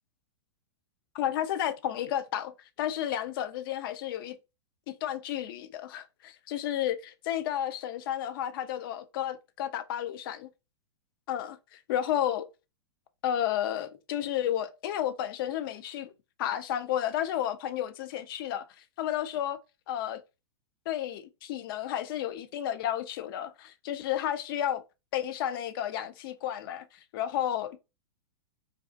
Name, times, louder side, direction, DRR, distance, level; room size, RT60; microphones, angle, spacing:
voice 1, 1.1-4.4 4.9-10.5 11.3-11.6 11.9-12.5 13.2-16.1 16.4-19.6 19.9-20.2 20.9-24.8 25.1-27.8, left 11 dB, 55° left, 0.4 m, -32 dB
2.4 x 2.3 x 2.4 m
hypercardioid pair, 115°, 14 cm